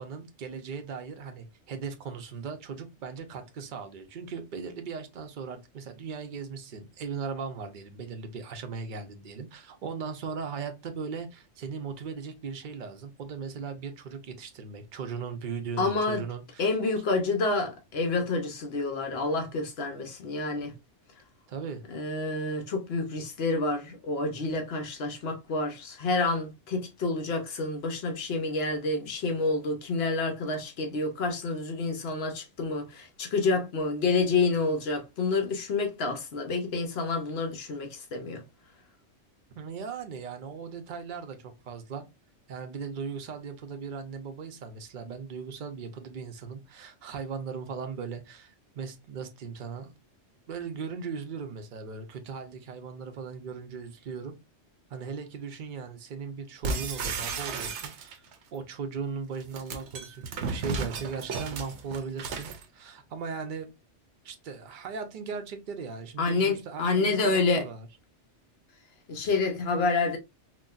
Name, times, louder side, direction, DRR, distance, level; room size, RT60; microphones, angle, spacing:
voice 1, 0.0-16.7 21.5-21.8 39.5-42.0 42.5-49.9 50.5-54.3 54.9-63.7 64.2-67.9, right 5 dB, 55° right, 0.6 m, -38 dB
voice 2, 15.8-16.2 16.6-20.7 21.9-38.4 66.2-67.6 69.1-70.2, left 3 dB, 60° left, 0.8 m, -28 dB
sound 1, 56.6-58.3 59.3-62.6, right 4 dB, 75° right, 0.9 m, -34 dB
3.9 x 2.2 x 2.3 m
omnidirectional pair, 1.3 m